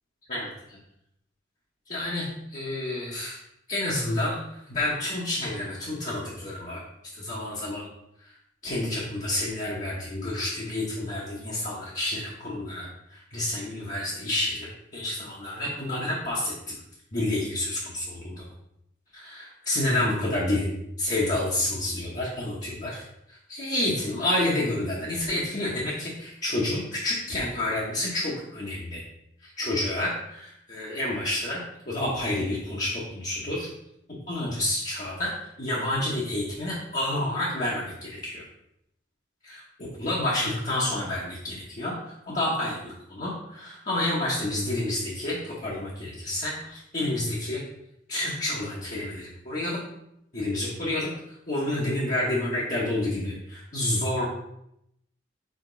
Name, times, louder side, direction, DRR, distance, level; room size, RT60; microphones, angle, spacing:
voice 1, 1.9-3.4 3.7-6.8 7.1-7.9 8.2-8.3 8.6-16.5 17.1-18.4 19.1-29.0 29.4-33.7 34.3-38.4 39.4-47.6 48.1-49.8 50.3-51.1 51.5-54.2, left 1 dB, 40° left, -7 dB, 1.2 m, -29 dB
5.2 x 5.0 x 3.9 m, 0.79 s
head